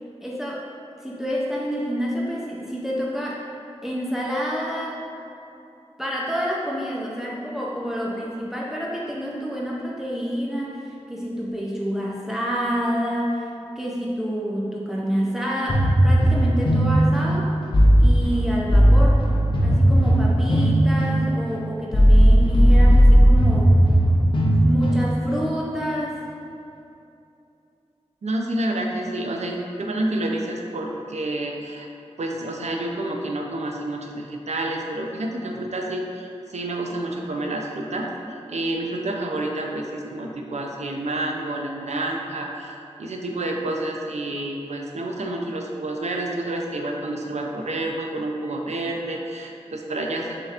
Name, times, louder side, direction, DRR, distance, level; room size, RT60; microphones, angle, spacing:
voice 1, 0.2-0.7 1.0-3.4 3.8-5.0 6.0-13.5 13.8-17.5 18.0-19.2 19.6-23.8 24.6-26.2, equal, 5° right, -4 dB, 0.5 m, -28 dB
sound 1, 15.7-25.5, equal, 45° left, 0.6 m, -16 dB
voice 2, 28.2-31.9 32.2-38.1 38.5-50.3, right 1 dB, 80° right, 1 dB, 0.5 m, -29 dB
6.5 x 2.8 x 2.4 m, 2.8 s
wide cardioid pair, 75°, 12 cm